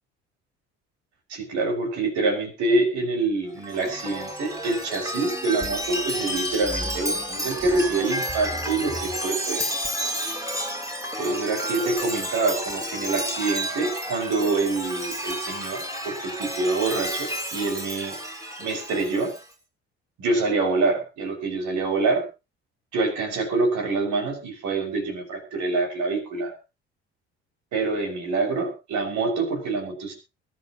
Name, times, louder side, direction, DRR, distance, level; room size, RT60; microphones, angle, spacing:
voice 1, 1.3-9.7 11.2-18.2 18.6-19.3 20.2-22.3 22.9-26.5 27.7-30.1, right 3 dB, 60° right, 2 dB, 6.3 m, -26 dB
Chime, 3.6-19.4, equal, 10° right, 3.9 m, -31 dB
22.5 x 11.0 x 3.0 m, 0.29 s
hypercardioid pair, 60°, 32 cm